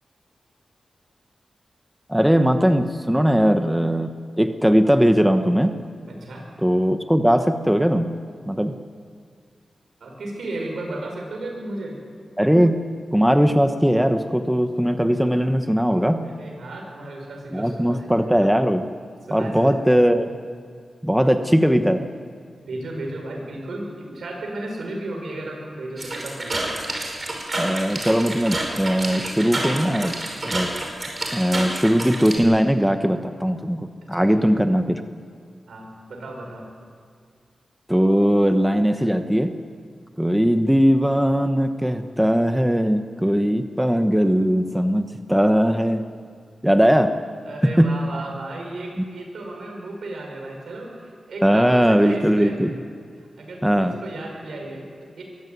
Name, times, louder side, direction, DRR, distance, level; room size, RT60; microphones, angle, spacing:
voice 1, 2.1-5.8 6.6-8.8 12.4-16.4 17.5-18.9 19.3-20.3 21.0-22.1 27.6-30.7 31.3-35.0 37.9-39.6 40.2-46.1 46.6-47.2 47.6-48.1 49.0-49.1 51.4-52.7 53.6-53.9, equal, 5° right, 7 dB, 1.1 m, -19 dB
voice 2, 6.1-6.4 10.0-12.0 16.2-18.1 19.3-19.8 22.7-26.8 34.0-34.4 35.7-36.7 47.4-52.5 53.2-55.2, right 2 dB, 80° right, 0 dB, 6.6 m, -34 dB
sound 1, 26.0-32.4, right 1 dB, 35° right, 5.8 m, -29 dB
22.5 x 15.0 x 9.6 m, 2.1 s
cardioid pair, 70°, 0 cm